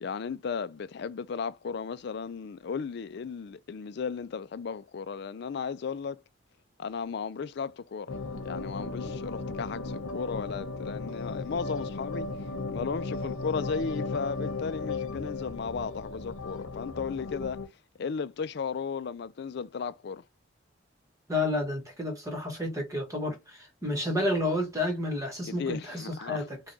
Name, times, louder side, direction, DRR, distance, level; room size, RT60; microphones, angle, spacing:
voice 1, 0.0-6.2 6.8-8.2 8.4-12.3 12.7-17.6 18.0-20.2 25.5-26.5, left 5 dB, 55° left, 0.3 m, -35 dB
sound 1, 8.1-17.7, left 3 dB, 80° left, 0.8 m, -36 dB
voice 2, 21.3-26.6, left 1 dB, 15° right, 1.1 m, -30 dB
4.8 x 2.3 x 2.7 m
head